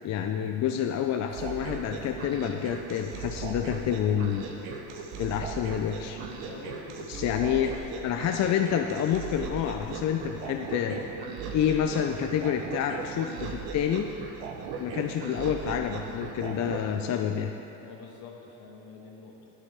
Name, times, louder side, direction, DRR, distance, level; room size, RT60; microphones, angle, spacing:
voice 1, 0.0-4.5 5.2-6.2 7.1-7.7 8.0-11.1 11.5-14.1 14.8-17.5, left 9 dB, 45° left, 5 dB, 0.5 m, -28 dB
sound 1, 1.3-16.9, right 5 dB, 80° right, 1.0 m, -38 dB
voice 2, 6.4-7.6 17.8-19.5, left 4 dB, 70° left, 0 dB, 1.6 m, -46 dB
9.9 x 9.0 x 3.6 m, 2.9 s
supercardioid pair, 95°, 38 cm